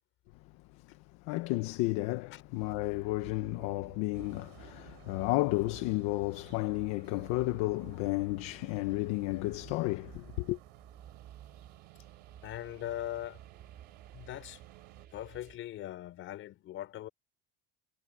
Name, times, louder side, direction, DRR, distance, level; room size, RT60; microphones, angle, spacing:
voice 1, 0.7-10.6, left 20 dB, 65° left, 1.2 m, -32 dB
sound 1, 2.6-15.6, right 10 dB, 30° right, 3.9 m, -54 dB
sound 2, 4.1-15.1, right 31 dB, 85° right, 5.2 m, -58 dB
voice 2, 12.4-13.4 14.1-14.6 15.1-17.1, left 13 dB, 40° left, 5.9 m, -40 dB
cardioid pair, 170°, 31 cm